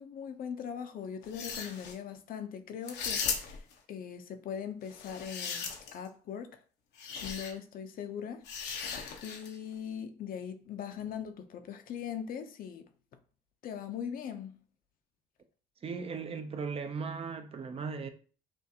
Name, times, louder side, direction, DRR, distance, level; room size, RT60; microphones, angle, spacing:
voice 1, 0.0-3.6 3.9-6.6 7.2-8.5 9.2-12.9 13.6-14.6, left 8 dB, 55° left, 0.7 m, -40 dB
sound 1, 1.2-2.0 2.9-3.7 4.9-6.1 7.0-7.5 8.5-9.6, left 6 dB, 85° left, 0.9 m, -37 dB
voice 2, 15.8-18.1, right 5 dB, 35° right, 0.6 m, -37 dB
6.0 x 2.5 x 2.8 m
cardioid pair, 110°, 17 cm